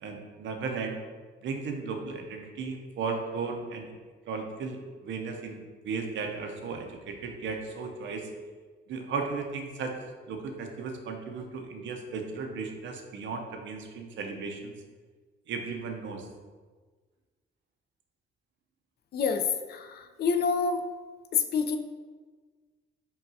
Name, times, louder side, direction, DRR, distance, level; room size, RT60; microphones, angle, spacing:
voice 1, 0.0-1.0 1.4-3.9 4.3-8.3 8.9-10.0 10.3-14.7 15.5-16.3, right 4 dB, 70° right, 3 dB, 0.6 m, -35 dB
voice 2, 19.1-20.9 21.3-21.8, left 5 dB, 55° left, 7 dB, 0.4 m, -27 dB
5.5 x 2.3 x 2.6 m, 1.4 s
cardioid pair, 90°, 20 cm